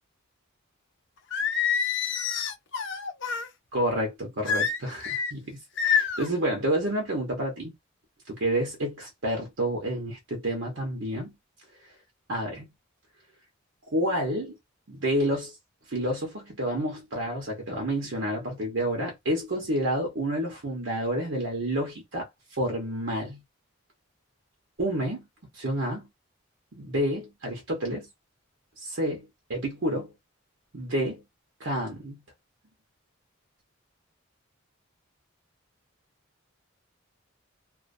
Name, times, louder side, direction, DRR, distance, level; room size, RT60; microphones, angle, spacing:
Singing, 1.3-3.5 4.5-5.3 5.8-6.3, left 7 dB, 55° left, 0.5 m, -27 dB
voice 1, 3.7-7.7 8.3-11.4 12.3-12.7 13.9-14.6 14.9-15.6 15.9-23.4 24.8-25.3 25.5-26.1 26.7-28.1 28.8-30.1 30.7-31.2 31.6-32.2, right 1 dB, 60° right, 0.8 m, -29 dB
2.4 x 2.2 x 2.4 m
head